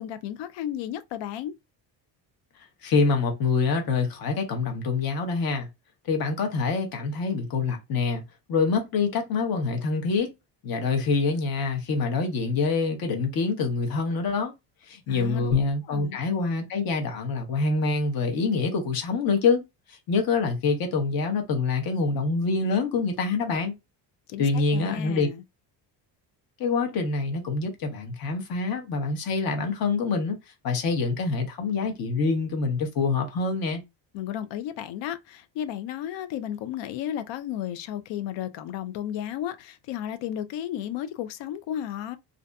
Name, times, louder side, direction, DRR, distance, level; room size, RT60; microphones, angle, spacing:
voice 1, 0.0-1.5 15.1-15.5 15.9-16.2 24.3-25.4 34.1-42.2, left 11 dB, 80° left, 0.5 m, -33 dB
voice 2, 2.8-5.7 6.1-8.2 8.5-10.3 10.6-14.5 14.9-19.6 19.9-23.7 24.4-25.3 26.6-30.4 30.6-33.8, left 4 dB, 55° left, 0.9 m, -25 dB
2.6 x 2.5 x 2.2 m
cardioid pair, 155°, 43 cm